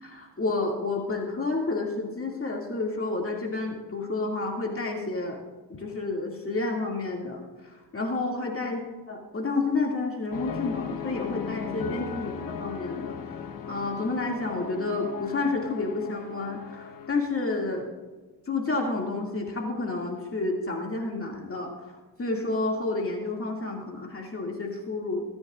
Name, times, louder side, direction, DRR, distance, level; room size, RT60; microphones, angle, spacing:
voice 1, 0.0-5.4 5.8-7.4 7.9-8.8 9.1-13.2 13.7-17.9 18.5-21.7 22.2-25.2, left 3 dB, 30° left, 0 dB, 2.3 m, -30 dB
Emotional Lil Orchestra, 10.3-17.1, left 7 dB, 50° left, 1.2 m, -37 dB
23.5 x 9.6 x 2.5 m, 1.3 s
supercardioid pair, 75°, 43 cm